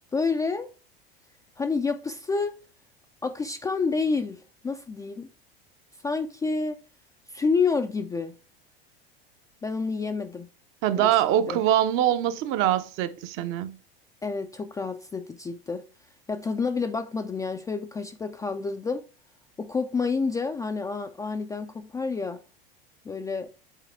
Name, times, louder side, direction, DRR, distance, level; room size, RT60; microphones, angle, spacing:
voice 1, 0.1-0.7 1.6-2.6 3.2-5.3 6.0-6.8 7.3-8.3 9.6-10.5 11.0-11.6 14.2-15.8 16.3-19.0 19.6-22.4 23.1-23.5, left 4 dB, 10° left, 0.3 m, -29 dB
voice 2, 10.8-13.7, right 11 dB, 45° right, 0.6 m, -23 dB
7.3 x 4.1 x 3.3 m
hypercardioid pair, 85°, 29 cm